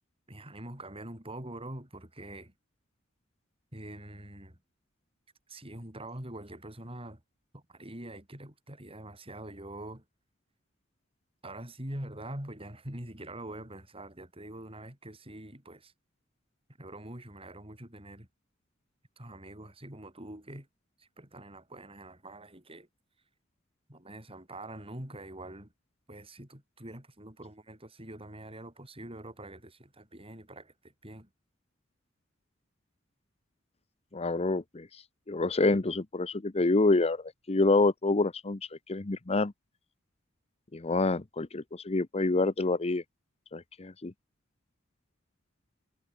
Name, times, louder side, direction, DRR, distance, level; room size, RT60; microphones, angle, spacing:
voice 1, 0.3-2.5 3.7-4.6 5.5-7.2 7.5-10.0 11.4-15.9 16.8-18.3 19.2-20.7 21.0-22.9 23.9-25.7 26.1-31.3, right 1 dB, 30° right, 7.6 m, -44 dB
voice 2, 34.1-38.6 38.9-39.5 40.7-43.0 43.5-44.1, left 2 dB, 30° left, 0.8 m, -27 dB
head